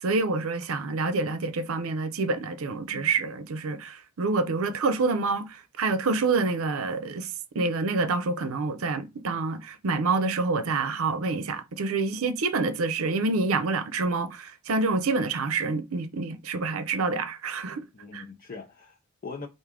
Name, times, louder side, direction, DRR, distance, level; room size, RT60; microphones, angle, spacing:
voice 1, 0.0-17.8 18.1-18.2, right 3 dB, 75° right, 0.6 m, -27 dB
voice 2, 2.9-3.3 12.0-12.3 17.9-19.5, left 4 dB, 40° left, 0.6 m, -42 dB
4.7 x 2.6 x 3.6 m
head